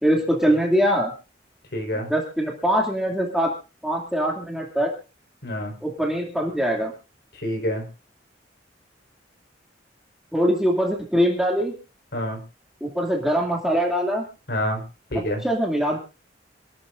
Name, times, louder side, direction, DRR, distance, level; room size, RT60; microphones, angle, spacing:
voice 1, 0.0-1.1 1.9-3.5 3.8-4.9 5.8-6.9 10.3-11.7 12.8-14.2 15.4-16.0, equal, ahead, -1 dB, 2.4 m, -22 dB
voice 2, 1.7-2.1 5.4-5.7 7.4-7.8 12.1-12.4 14.5-14.8 15.1-15.4, equal, 60° left, 3 dB, 4.5 m, -27 dB
27.0 x 13.0 x 2.6 m, 0.33 s
head